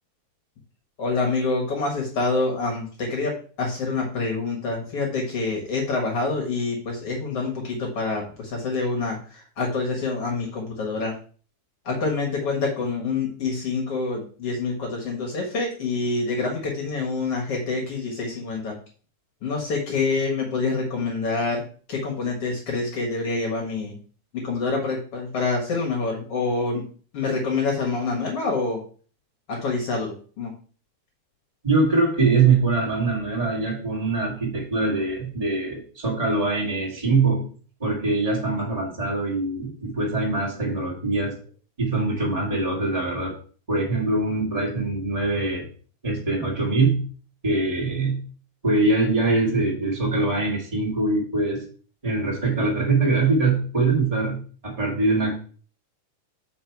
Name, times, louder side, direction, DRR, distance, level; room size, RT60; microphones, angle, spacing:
voice 1, 1.0-11.1 11.9-18.8 19.4-23.9 24.3-26.8 27.1-28.8 29.5-30.5, left 3 dB, 55° left, -1 dB, 2.2 m, -26 dB
voice 2, 31.6-37.4 37.8-41.3 41.8-43.3 43.7-45.7 46.0-47.1 47.4-48.2 48.6-51.6 52.0-55.3, right 3 dB, 15° right, -5 dB, 1.6 m, -23 dB
6.6 x 5.4 x 4.6 m, 0.41 s
omnidirectional pair, 3.5 m